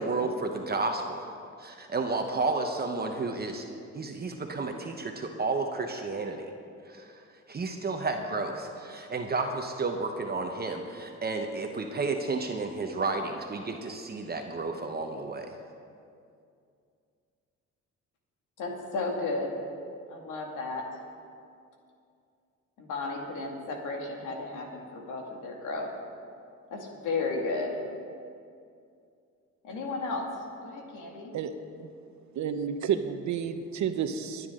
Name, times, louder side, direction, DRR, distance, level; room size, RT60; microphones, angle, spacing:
voice 1, 0.0-1.3 1.6-3.7 3.9-6.4 6.9-7.2 7.5-15.5, right 3 dB, 30° right, 4 dB, 1.1 m, -32 dB
voice 2, 18.6-19.5 20.1-20.9 22.8-25.9 26.7-27.8 29.6-30.3 30.6-31.4, left 3 dB, 85° left, 0 dB, 2.3 m, -33 dB
voice 3, 32.3-34.5, right 8 dB, 70° right, 8 dB, 1.0 m, -30 dB
23.5 x 9.6 x 3.8 m, 2.4 s
cardioid pair, 90°, 30 cm